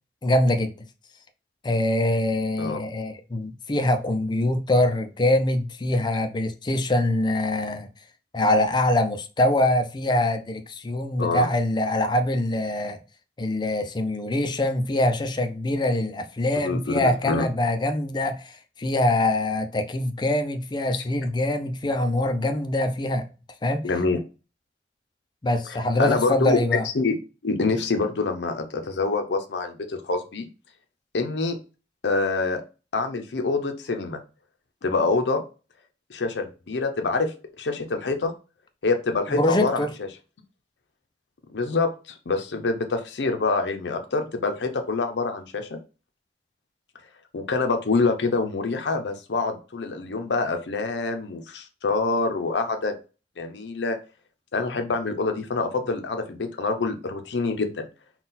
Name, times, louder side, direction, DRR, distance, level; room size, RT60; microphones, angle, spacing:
voice 1, 0.2-0.7 1.6-7.9 8.3-13.0 13.4-23.2 23.6-23.9 25.4-26.8 39.3-39.9, left 1 dB, 25° left, 0.5 m, -24 dB
voice 2, 16.6-17.5 23.8-24.2 25.7-26.6 26.9-27.2 27.4-30.5 31.1-31.6 32.0-32.6 32.9-34.2 34.8-35.4 36.1-38.3 38.8-39.9 41.5-45.8 47.3-53.0 53.4-54.0 54.5-57.9, left 3 dB, 75° left, 0.6 m, -26 dB
3.8 x 2.3 x 4.0 m
head